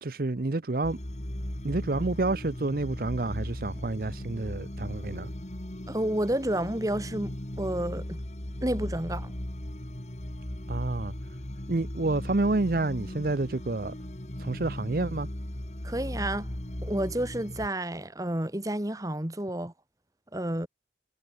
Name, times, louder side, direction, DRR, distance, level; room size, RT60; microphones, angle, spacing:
voice 1, 0.0-1.0 1.6-5.3 10.7-11.1 11.7-13.9 14.4-15.3, right 2 dB, 55° right, 0.8 m, -29 dB
sound 1, 0.8-17.7, left 1 dB, 40° left, 1.9 m, -37 dB
voice 2, 5.9-8.2 8.6-9.3 15.8-16.5 16.8-19.7 20.3-20.7, right 1 dB, 20° right, 1.4 m, -30 dB
head